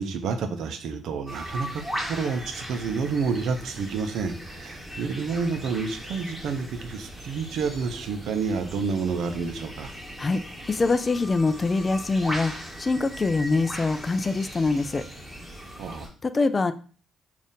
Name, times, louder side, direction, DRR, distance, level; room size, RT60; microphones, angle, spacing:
voice 1, 0.0-9.9 15.8-16.1, right 5 dB, 75° right, 8 dB, 0.5 m, -29 dB
sound 1, 1.3-16.1, equal, 5° right, 1.4 m, -38 dB
voice 2, 10.7-15.0 16.2-16.7, left 3 dB, 30° left, 11 dB, 0.3 m, -24 dB
3.5 x 2.4 x 4.1 m, 0.40 s
cardioid pair, 90°, 0 cm